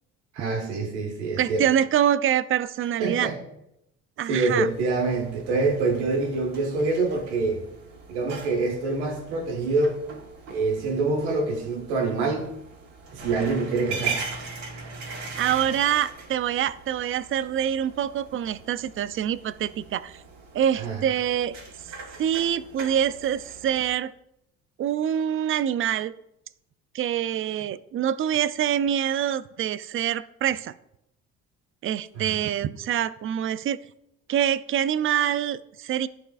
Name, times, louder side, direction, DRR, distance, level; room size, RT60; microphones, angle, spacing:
voice 1, 0.3-1.6 3.0-3.4 4.3-7.6 8.1-10.0 10.5-12.5 13.1-14.2 20.8-21.0 32.1-32.3, right 3 dB, 90° right, 2 dB, 1.4 m, -26 dB
voice 2, 1.4-3.3 4.2-4.7 15.4-20.2 20.5-21.6 22.2-24.1 24.8-26.1 26.9-30.7 31.8-33.8 34.3-36.1, right 10 dB, 40° right, 16 dB, 0.4 m, -25 dB
sound 1, 4.7-23.9, right 5 dB, 60° right, 2.0 m, -40 dB
11.0 x 4.2 x 2.4 m, 0.81 s
hypercardioid pair, 65°, 33 cm